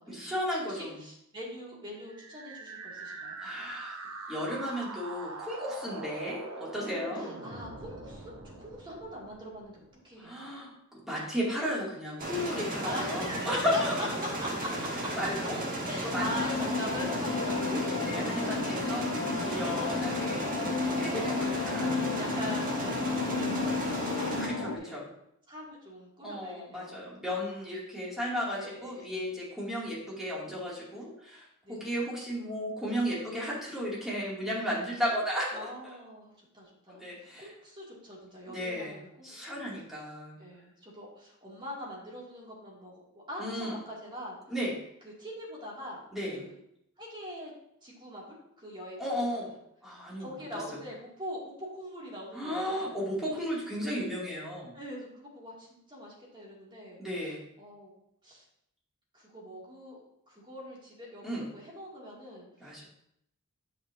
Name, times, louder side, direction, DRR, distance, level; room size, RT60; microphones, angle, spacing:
voice 1, 0.1-1.0 3.1-3.9 4.3-7.3 10.2-14.2 15.2-15.7 16.1-16.7 18.0-20.4 20.8-22.1 24.4-25.0 26.2-31.4 31.7-35.7 36.9-37.5 38.5-40.4 43.4-43.7 44.5-44.7 46.1-46.4 49.0-49.5 49.8-50.3 52.3-54.7 57.0-57.4 61.2-61.4 62.6-62.8, equal, ahead, -7 dB, 2.4 m, -34 dB
voice 2, 0.7-3.4 5.8-5.9 7.1-10.6 12.8-14.9 15.9-17.8 19.4-19.8 21.1-21.6 22.1-25.0 25.5-27.1 27.4-27.6 28.5-29.3 31.6-32.0 35.5-39.6 40.4-44.4 45.0-46.6 47.0-47.5 47.8-49.4 50.2-53.0 53.3-53.4 54.7-57.0 57.6-57.9 58.2-58.4 59.1-60.0 60.3-62.8, equal, 20° right, -5 dB, 2.3 m, -42 dB
sound 1, 2.0-9.9, right 3 dB, 65° right, 1.0 m, -43 dB
sound 2, 12.2-24.5, right 1 dB, 40° right, 1.5 m, -35 dB
sound 3, 16.1-24.8, left 4 dB, 70° left, 0.9 m, -32 dB
9.3 x 5.8 x 2.7 m, 0.75 s
head